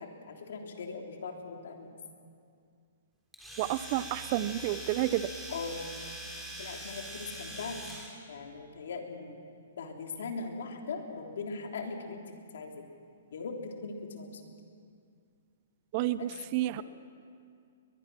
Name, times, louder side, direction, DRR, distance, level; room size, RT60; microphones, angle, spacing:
voice 1, 0.0-1.9 5.5-5.9 6.6-7.8 8.3-9.4 9.8-12.2 12.5-12.8 13.3-14.4 16.2-16.3, left 4 dB, 70° left, 2 dB, 3.2 m, -40 dB
Domestic sounds home sounds, 3.3-8.2, right 1 dB, ahead, 3.7 m, -43 dB
voice 2, 3.6-5.3 15.9-16.8, right 14 dB, 40° right, 15 dB, 0.6 m, -30 dB
21.5 x 21.5 x 6.1 m, 2.3 s
hypercardioid pair, 145°, 0 cm